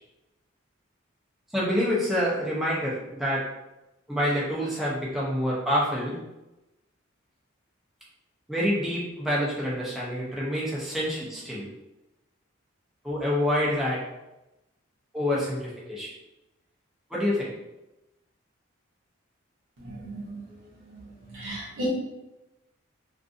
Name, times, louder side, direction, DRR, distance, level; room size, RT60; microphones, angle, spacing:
voice 1, 1.5-3.4 4.1-6.2 8.5-11.7 13.0-14.0 15.1-16.1 17.1-17.5, equal, ahead, -7 dB, 0.5 m, -27 dB
voice 2, 19.8-20.3 20.9-21.0 21.3-21.9, right 1 dB, 70° right, -6 dB, 0.8 m, -34 dB
2.5 x 2.5 x 2.4 m, 0.96 s
head